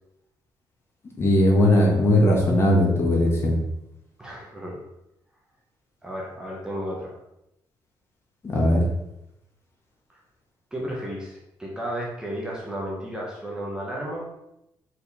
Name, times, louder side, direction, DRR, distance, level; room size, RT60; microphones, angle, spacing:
voice 1, 1.2-3.6 8.4-8.8, left 1 dB, 30° left, -1 dB, 1.5 m, -19 dB
voice 2, 4.2-4.8 6.0-7.1 10.1-10.2 10.7-14.4, equal, 10° right, -4 dB, 1.1 m, -33 dB
5.2 x 4.7 x 4.2 m, 0.86 s
cardioid pair, 160°, 9 cm